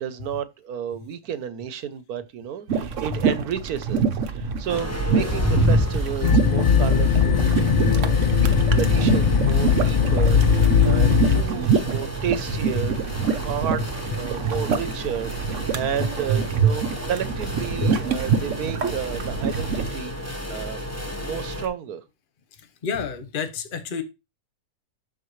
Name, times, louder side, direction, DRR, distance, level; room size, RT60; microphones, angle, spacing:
voice 1, 0.0-7.6 7.8-8.2 8.7-20.8 21.2-22.0, right 9 dB, 80° right, 1.3 m, -32 dB
sound 1, 2.7-19.9, right 6 dB, 60° right, 1.1 m, -26 dB
sound 2, 4.7-21.7, equal, 10° left, 1.1 m, -30 dB
sound 3, 6.2-11.4, left 6 dB, 90° left, 0.4 m, -19 dB
voice 2, 22.8-24.0, left 6 dB, 40° left, 1.1 m, -29 dB
12.5 x 4.5 x 3.2 m
omnidirectional pair, 1.6 m